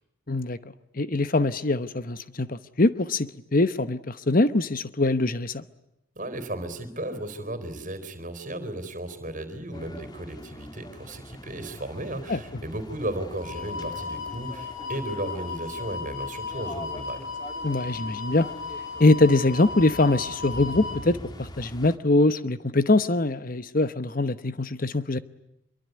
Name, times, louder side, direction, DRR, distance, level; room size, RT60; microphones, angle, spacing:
voice 1, 0.3-0.6 0.9-5.6 12.3-12.4 17.6-18.5 19.0-25.2, left 2 dB, 40° left, 13 dB, 1.0 m, -23 dB
voice 2, 6.2-17.3, right 1 dB, 40° right, 11 dB, 4.1 m, -35 dB
sound 1, 9.7-22.0, left 1 dB, 20° left, 1.8 m, -43 dB
sound 2, 13.4-21.0, left 4 dB, 80° left, 6.2 m, -36 dB
26.0 x 23.5 x 9.5 m, 0.83 s
head